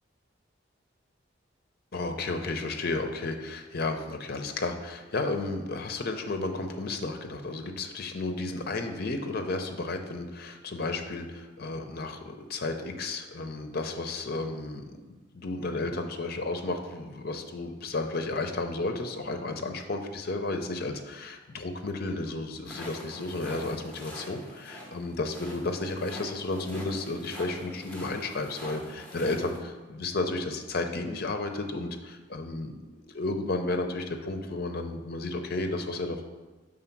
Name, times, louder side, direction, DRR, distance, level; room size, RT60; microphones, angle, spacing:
voice 1, 1.9-32.7 33.0-36.2, left 2 dB, 55° left, 5 dB, 0.6 m, -33 dB
sound 1, 22.6-29.6, equal, 5° left, 1.0 m, -44 dB
5.0 x 3.8 x 5.8 m, 1.2 s
head